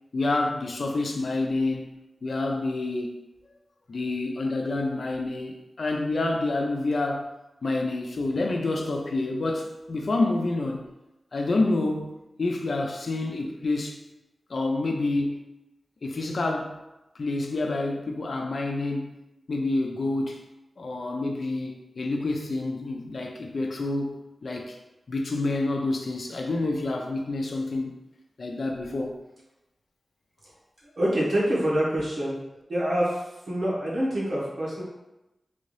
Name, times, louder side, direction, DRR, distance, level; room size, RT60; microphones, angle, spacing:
voice 1, 0.1-1.9 2.2-3.2 3.9-7.3 7.6-10.8 11.3-12.1 12.4-14.0 14.5-15.4 16.0-16.8 17.2-19.1 19.5-20.4 20.8-24.8 25.1-27.9 28.4-29.2, left 2 dB, 60° left, 2 dB, 0.5 m, -28 dB
voice 2, 31.0-32.4 32.7-34.8, right 1 dB, 85° right, -8 dB, 1.5 m, -26 dB
3.4 x 2.6 x 3.2 m, 0.95 s
wide cardioid pair, 120°, 0 cm